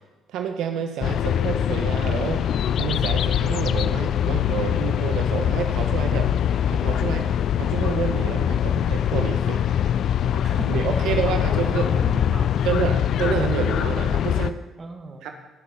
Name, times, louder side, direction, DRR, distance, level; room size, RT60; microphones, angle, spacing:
voice 1, 0.3-2.5 2.7-6.3 6.7-9.6 10.3-10.4 10.7-11.9 12.6-14.6 15.2-15.3, right 7 dB, 75° right, 5 dB, 1.0 m, -29 dB
sound 1, 1.0-14.5, left 9 dB, 65° left, 0.4 m, -23 dB
voice 2, 10.4-13.0 14.8-15.3, right 3 dB, 30° right, 4 dB, 1.8 m, -37 dB
17.5 x 6.2 x 5.5 m, 1.2 s
supercardioid pair, 80°, 0 cm